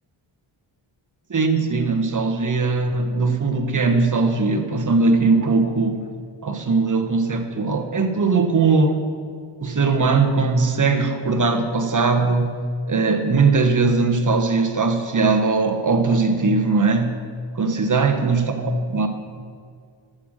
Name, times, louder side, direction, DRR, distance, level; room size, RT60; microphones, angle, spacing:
voice 1, 1.3-6.0 6.4-9.0 9.6-17.2 17.5-19.1, right 4 dB, 40° right, 5 dB, 1.1 m, -20 dB
11.5 x 7.7 x 6.4 m, 2.2 s
wide cardioid pair, 125°, 48 cm